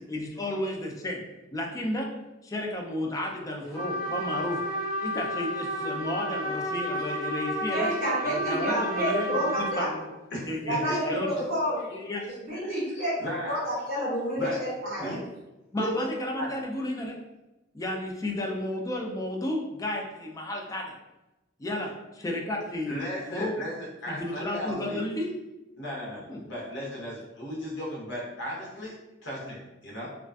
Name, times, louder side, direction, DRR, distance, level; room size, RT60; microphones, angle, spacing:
voice 1, 0.1-1.2 1.5-2.1 2.4-4.6 5.0-7.9 8.2-10.1 10.5-11.3 11.9-12.2 15.7-17.2 17.7-21.0 21.6-23.0 23.3-23.6 24.1-25.3 26.3-26.4, left 1 dB, 20° left, 0 dB, 0.3 m, -32 dB
Trumpet, 3.7-9.9, equal, 5° right, 0.8 m, -31 dB
voice 2, 7.7-9.9 10.6-11.8 12.4-13.1 13.4-15.2 15.8-16.1, equal, 45° right, -7 dB, 1.4 m, -29 dB
voice 3, 10.3-11.4 12.6-13.7 14.4-14.6 15.0-15.2 16.4-16.5 22.9-23.7 24.0-25.0 25.8-29.0 29.2-30.1, equal, 65° left, -4 dB, 0.8 m, -36 dB
2.4 x 2.3 x 2.3 m, 1.0 s
head